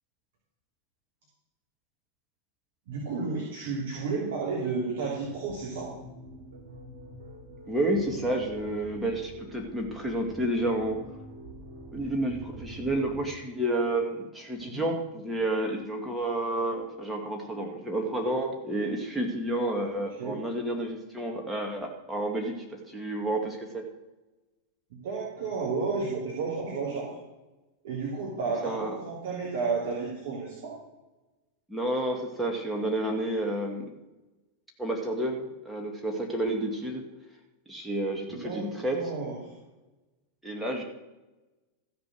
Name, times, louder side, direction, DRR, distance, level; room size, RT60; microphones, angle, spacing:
voice 1, 2.9-5.9 14.7-14.9 20.2-20.4 24.9-27.1 27.8-30.7 38.3-39.4, right 4 dB, 55° right, -4 dB, 3.3 m, -32 dB
sound 1, 5.2-13.2, equal, 75° right, 3.8 m, -46 dB
voice 2, 7.7-11.0 11.9-23.9 28.6-29.0 31.7-33.9 34.8-37.0 37.7-39.0 40.4-40.8, right 1 dB, 5° right, -1 dB, 1.9 m, -30 dB
14.5 x 6.9 x 6.3 m, 1.1 s
figure-of-eight pair, 90°, 0 cm